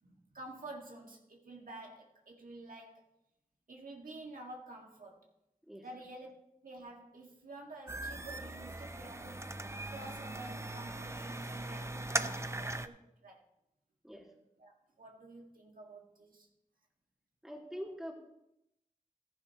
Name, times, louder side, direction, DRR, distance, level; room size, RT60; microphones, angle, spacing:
voice 1, 0.0-3.1 3.7-5.3 5.8-6.3 6.6-9.5 9.9-13.4 14.6-16.5, right 2 dB, 85° right, -1 dB, 1.8 m, -50 dB
sound 1, 7.9-12.9, right 2 dB, 20° right, 0.6 m, -39 dB
voice 2, 17.4-18.1, equal, 5° right, 0 dB, 2.3 m, -44 dB
15.0 x 10.5 x 2.9 m, 0.84 s
wide cardioid pair, 60°, 14 cm